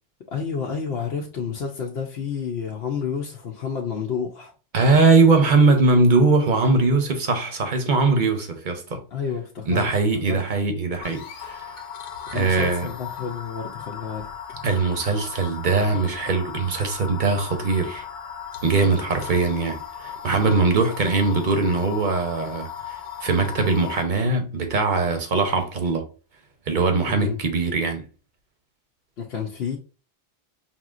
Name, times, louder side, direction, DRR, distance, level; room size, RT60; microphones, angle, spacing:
voice 1, 0.3-4.5 9.1-9.9 10.3-10.4 12.3-14.3 27.1-27.4 29.2-29.8, left 6 dB, 65° left, 0.9 m, -30 dB
voice 2, 4.7-9.0 9.7-11.7 12.3-12.9 14.6-18.0 18.6-26.0 26.7-28.0, right 3 dB, 50° right, 0.8 m, -21 dB
sound 1, 11.0-24.0, left 7 dB, 90° left, 1.1 m, -37 dB
5.4 x 2.9 x 2.4 m
omnidirectional pair, 1.2 m